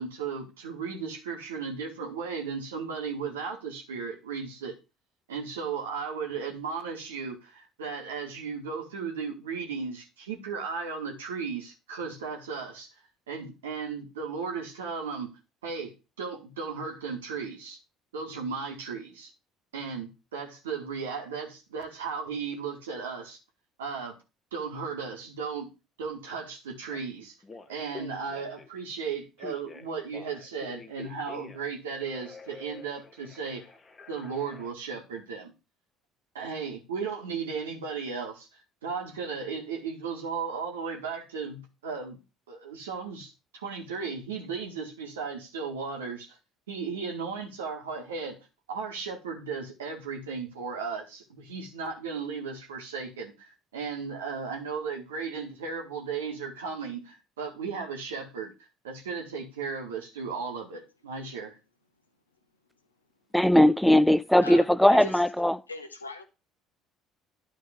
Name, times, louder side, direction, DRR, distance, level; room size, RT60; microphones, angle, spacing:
voice 1, 0.0-4.8 5.3-12.9 13.3-15.3 15.6-17.8 18.1-19.3 19.7-23.4 23.8-24.2 24.5-25.7 26.0-27.3 27.7-33.6 34.1-35.5 36.3-38.5 38.8-42.2 42.5-46.4 46.7-48.4 48.7-58.5 58.8-61.6, right 5 dB, 80° right, 1.9 m, -35 dB
Telephone, 26.9-27.0 27.4-28.8 29.4-31.7 32.0-34.7, left 4 dB, 25° left, 1.1 m, -47 dB
voice 2, 63.3-65.6, left 1 dB, 5° left, 0.4 m, -19 dB
voice 3, 64.4-65.2 65.7-66.2, left 2 dB, 90° left, 1.0 m, -39 dB
12.0 x 4.2 x 3.7 m
figure-of-eight pair, 55°, 0 cm